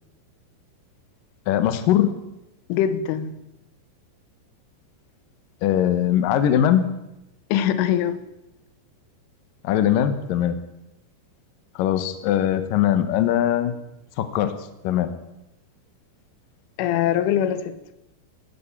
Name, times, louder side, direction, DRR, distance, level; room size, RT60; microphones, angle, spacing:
voice 1, 1.5-2.1 5.6-6.9 9.6-10.6 11.8-13.7 14.2-14.5 14.8-15.1, left 10 dB, 70° left, 10 dB, 2.2 m, -20 dB
voice 2, 2.7-3.4 7.5-8.3 16.8-17.8, left 10 dB, 90° left, 13 dB, 3.5 m, -22 dB
18.0 x 10.5 x 7.4 m, 0.92 s
omnidirectional pair, 5.5 m